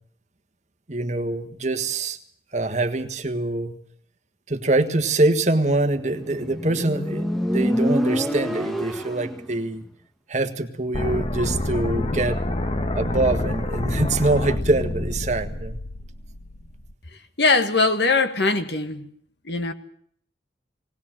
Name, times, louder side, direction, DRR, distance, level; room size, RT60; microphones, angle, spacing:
voice 1, 0.9-2.2 2.5-3.7 4.5-9.8 10.3-12.5 12.9-15.8, right 2 dB, 40° right, 8 dB, 1.5 m, -24 dB
Motorcycle, 6.0-9.5, equal, ahead, 1.2 m, -26 dB
sound 1, 10.9-16.9, left 1 dB, 30° left, 1.2 m, -27 dB
voice 2, 17.4-19.1 19.4-19.7, left 3 dB, 70° left, 8 dB, 1.8 m, -21 dB
19.5 x 19.0 x 7.6 m, 0.62 s
head